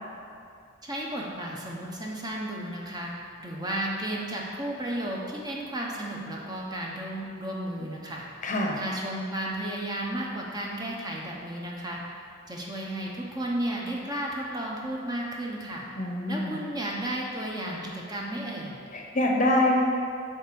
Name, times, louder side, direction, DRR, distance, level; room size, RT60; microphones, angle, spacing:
voice 1, 0.8-3.1 3.4-8.2 8.8-12.0 12.5-15.8 16.3-17.8 18.1-18.8, right 1 dB, 20° right, -3 dB, 1.0 m, -33 dB
voice 2, 8.4-8.8 16.0-16.6 18.9-19.8, left 1 dB, 40° left, 0 dB, 0.9 m, -25 dB
9.1 x 3.5 x 6.9 m, 2.4 s
head